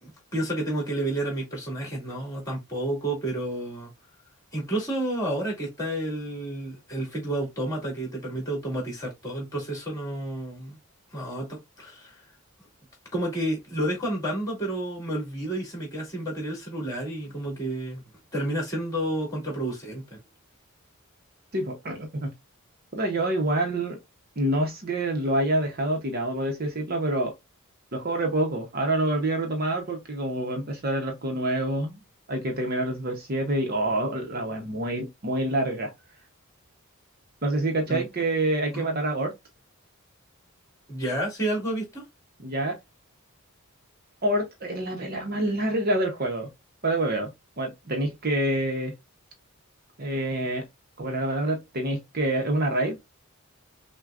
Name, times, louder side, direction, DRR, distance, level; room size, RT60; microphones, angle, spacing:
voice 1, 0.0-3.9 4.5-10.8 11.1-12.2 13.1-18.0 18.3-20.0 37.9-38.0 38.7-38.8 40.9-42.0, right 1 dB, 15° left, 2.2 m, -30 dB
voice 2, 21.5-22.3 22.9-24.0 24.4-27.3 27.9-32.0 32.3-35.9 37.4-39.3 42.4-42.8 44.2-46.5 46.8-47.3 47.6-48.9 50.0-50.6 51.0-53.0, right 1 dB, 45° right, 0.8 m, -27 dB
6.0 x 2.2 x 2.4 m
head